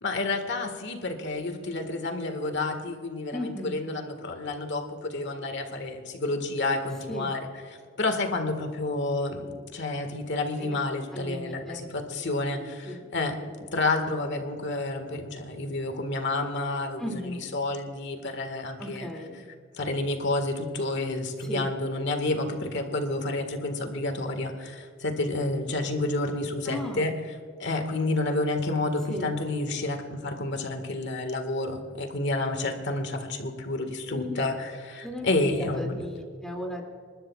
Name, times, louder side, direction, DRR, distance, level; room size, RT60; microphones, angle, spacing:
voice 1, 0.0-7.4 7.7-13.4 13.7-19.1 19.7-27.1 27.6-36.1, left 2 dB, 60° left, 6 dB, 1.7 m, -30 dB
voice 2, 3.3-3.8 7.1-7.4 10.6-10.7 11.1-11.9 12.8-13.1 17.0-17.4 18.8-19.5 21.4-21.7 26.7-27.1 29.1-29.4 34.1-34.5 35.0-36.8, left 1 dB, 5° left, 0 dB, 2.5 m, -36 dB
28.0 x 12.5 x 2.4 m, 2.1 s
head